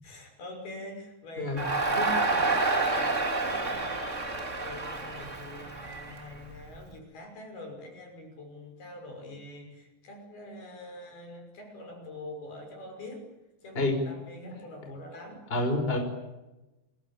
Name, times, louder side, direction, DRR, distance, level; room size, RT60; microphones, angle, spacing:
voice 1, 0.0-13.3 13.6-15.4, left 1 dB, 55° left, 4 dB, 7.8 m, -45 dB
Crowd, 1.6-6.8, right 3 dB, 20° right, 2.2 m, -29 dB
voice 2, 15.5-16.0, left 2 dB, 10° left, 4 dB, 5.3 m, -28 dB
29.0 x 22.0 x 8.9 m, 1.0 s
omnidirectional pair, 5.3 m